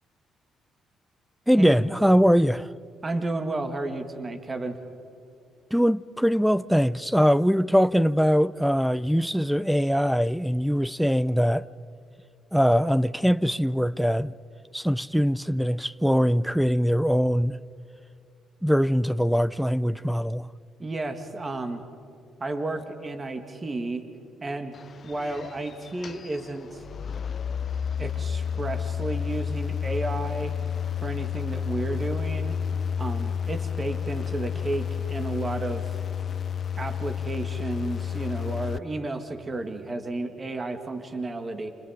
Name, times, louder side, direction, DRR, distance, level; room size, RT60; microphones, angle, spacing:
voice 1, 1.5-2.7 5.7-11.7 12.5-14.3 14.7-17.6 18.6-20.5, equal, ahead, 0.5 m, -22 dB
voice 2, 3.0-4.8 20.8-21.8 22.4-24.1 24.4-24.7 25.0-26.8 28.0-30.5 31.0-32.6 33.0-35.9 36.8-41.7, right 2 dB, 30° right, 2.2 m, -32 dB
sound 1, 24.7-38.8, left 7 dB, 50° left, 0.5 m, -31 dB
29.5 x 27.0 x 5.2 m
cardioid pair, 90°, 0 cm